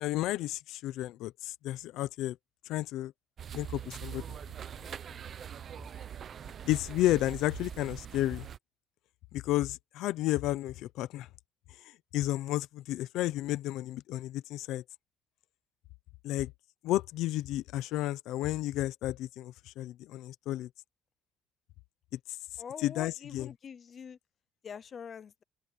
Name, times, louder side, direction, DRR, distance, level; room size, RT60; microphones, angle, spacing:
voice 1, 0.0-2.4 2.7-3.1 3.5-4.4 6.6-8.5 9.3-11.3 11.8-14.8 16.2-16.5 16.8-20.7 22.1-22.2 22.8-23.5, left 15 dB, 65° left, 0.7 m, -32 dB
sound 1, 3.4-8.6, right 9 dB, 35° right, 0.9 m, -43 dB
voice 2, 22.6-24.2 24.6-25.4, left 7 dB, 30° left, 0.6 m, -44 dB
open air
cardioid pair, 170°, 0 cm